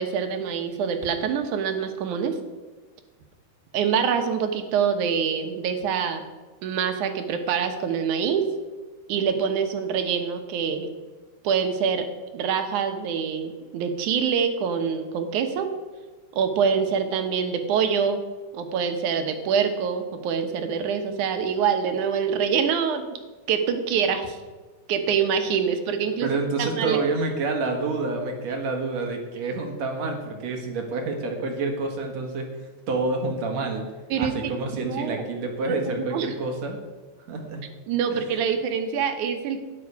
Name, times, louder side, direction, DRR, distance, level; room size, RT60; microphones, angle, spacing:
voice 1, 0.0-2.4 3.7-6.2 6.6-8.5 9.1-10.9 11.4-12.1 12.3-15.7 16.3-18.2 18.5-23.2 23.5-24.4 24.9-26.3 26.6-27.0 34.1-34.3 34.8-35.2 35.9-36.3 37.9-39.6, right 7 dB, 90° right, 6 dB, 2.6 m, -25 dB
voice 2, 26.2-32.5 32.9-33.8 34.2-36.8 37.3-37.6 38.1-38.2, right 3 dB, 65° right, 2 dB, 2.8 m, -28 dB
12.5 x 10.0 x 4.8 m, 1.3 s
omnidirectional pair, 3.4 m